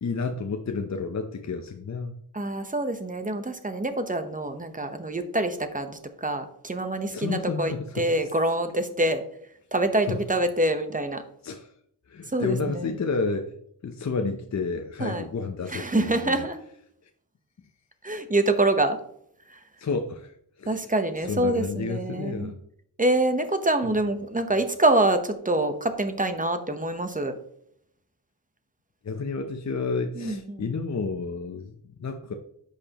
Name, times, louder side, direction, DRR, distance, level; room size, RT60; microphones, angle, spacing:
voice 1, 0.0-2.2 7.1-8.1 10.1-10.2 11.4-11.7 12.1-13.5 13.8-16.4 19.8-20.9 21.2-22.6 29.0-32.3, left 4 dB, 45° left, 5 dB, 0.7 m, -31 dB
voice 2, 2.3-9.2 9.7-11.2 12.3-12.9 15.0-15.3 15.7-16.6 18.0-19.0 19.5-19.6 20.7-22.5 23.0-27.3 30.2-30.8, right 2 dB, 20° right, 8 dB, 1.0 m, -26 dB
10.0 x 6.7 x 3.0 m, 0.70 s
wide cardioid pair, 105°, 40 cm